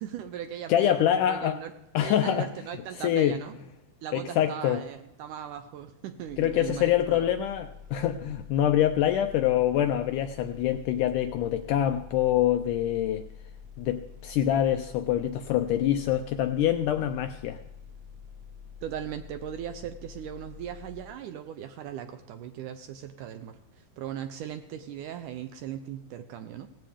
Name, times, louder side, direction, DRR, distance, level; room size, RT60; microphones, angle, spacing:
voice 1, 0.0-1.7 2.0-3.6 4.0-7.3 18.8-26.7, right 10 dB, 75° right, 8 dB, 2.0 m, -38 dB
voice 2, 0.7-1.6 1.9-2.5 3.0-3.4 4.1-4.8 6.4-13.3 13.8-17.6, left 11 dB, 80° left, 8 dB, 1.9 m, -25 dB
sound 1, 6.3-21.0, left 7 dB, 30° right, 2.2 m, -47 dB
17.5 x 14.5 x 3.5 m, 0.84 s
omnidirectional pair, 4.2 m